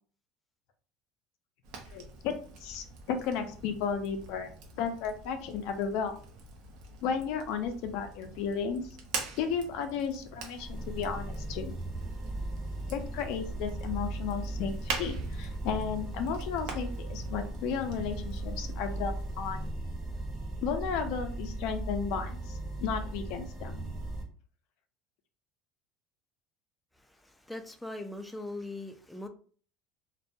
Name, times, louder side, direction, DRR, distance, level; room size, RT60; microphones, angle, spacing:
Fire, 1.6-19.7, right 4 dB, 65° right, 0.6 m, -45 dB
voice 1, 1.9-2.3 2.6-4.5 4.8-6.1 7.0-8.9 9.4-11.8 12.9-19.7 20.6-23.9, left 6 dB, 70° left, 0.5 m, -34 dB
sound 1, 10.5-24.2, right 2 dB, 25° right, 0.8 m, -37 dB
voice 2, 27.2-29.3, left 2 dB, 5° left, 0.3 m, -40 dB
2.3 x 2.1 x 2.6 m
supercardioid pair, 120°, 0 cm